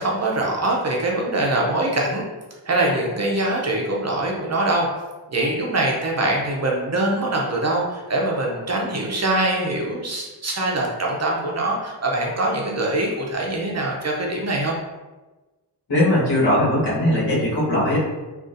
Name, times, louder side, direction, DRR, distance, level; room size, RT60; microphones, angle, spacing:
voice 1, 0.0-2.3 2.7-4.9 5.3-14.8, right 2 dB, 40° right, -1 dB, 0.5 m, -23 dB
voice 2, 15.9-18.0, left 1 dB, 70° left, -7 dB, 1.4 m, -19 dB
3.8 x 2.4 x 2.5 m, 1.2 s
wide cardioid pair, 130°, 43 cm